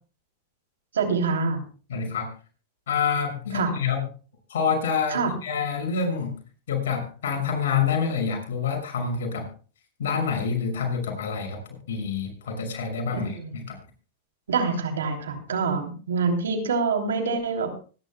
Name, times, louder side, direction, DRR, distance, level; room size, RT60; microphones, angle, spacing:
voice 1, 0.9-1.6 3.5-3.8 5.1-5.3 13.1-13.6 14.5-17.8, right 4 dB, 85° right, 4 dB, 3.1 m, -26 dB
voice 2, 1.9-2.3 2.9-4.1 4.5-6.4 6.7-9.5 10.0-11.6 11.9-13.8, left 6 dB, 80° left, 3 dB, 6.4 m, -27 dB
25.0 x 11.5 x 2.3 m, 0.38 s
hypercardioid pair, 110°, 0 cm